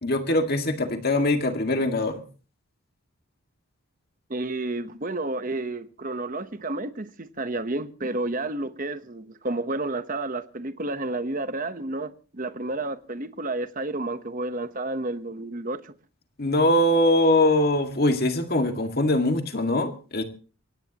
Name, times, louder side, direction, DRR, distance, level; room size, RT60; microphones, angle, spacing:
voice 1, 0.0-2.2 16.4-20.2, left 1 dB, 45° left, 2.0 m, -22 dB
voice 2, 4.3-15.9, right 2 dB, 35° right, 1.0 m, -31 dB
23.0 x 18.0 x 3.0 m
head